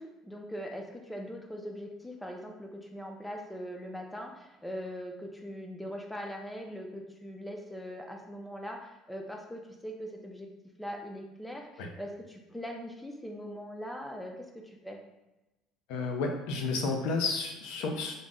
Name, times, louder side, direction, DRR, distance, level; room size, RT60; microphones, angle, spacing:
voice 1, 0.0-10.5 10.8-15.0, equal, 5° left, 2 dB, 0.4 m, -41 dB
voice 2, 15.9-18.1, left 3 dB, 85° left, 3 dB, 0.6 m, -31 dB
3.8 x 2.1 x 3.6 m, 1.0 s
cardioid pair, 175°, 0 cm